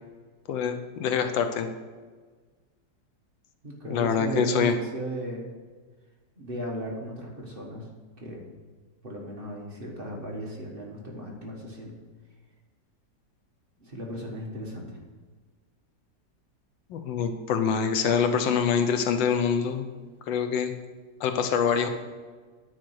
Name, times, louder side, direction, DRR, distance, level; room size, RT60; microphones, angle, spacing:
voice 1, 0.5-1.7 3.9-4.7 16.9-19.9 20.3-20.7 21.2-21.9, left 7 dB, 90° left, 7 dB, 1.5 m, -25 dB
voice 2, 3.6-5.5 6.4-7.9 8.2-8.5 9.0-11.9 13.8-15.0, right 1 dB, 30° right, -2 dB, 1.4 m, -36 dB
9.7 x 4.5 x 6.3 m, 1.4 s
omnidirectional pair, 2.0 m